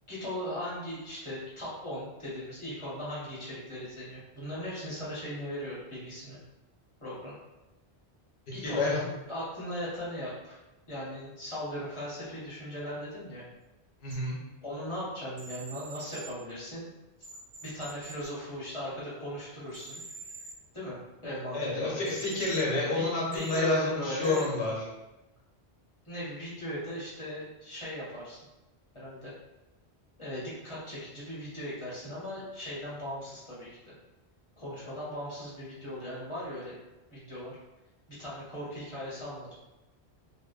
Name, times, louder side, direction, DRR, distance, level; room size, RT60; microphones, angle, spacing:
voice 1, 0.1-6.4 7.0-7.3 8.5-10.6 10.9-13.4 14.6-16.9 17.6-20.0 20.7-21.9 22.7-24.7 26.0-28.4 28.9-29.3 30.2-33.9 34.6-36.8 37.1-37.5 38.1-39.5, equal, 30° left, -9 dB, 0.9 m, -38 dB
voice 2, 8.6-9.0 14.0-14.3 21.5-24.8, left 2 dB, 70° left, -4 dB, 1.0 m, -29 dB
sound 1, 14.1-14.2 15.4-16.3 17.2-18.3 19.7-20.5 22.1-22.6 23.3-23.6 24.2-24.5, right 3 dB, 75° right, 0.9 m, -45 dB
2.6 x 2.1 x 2.3 m, 1.0 s
omnidirectional pair, 1.1 m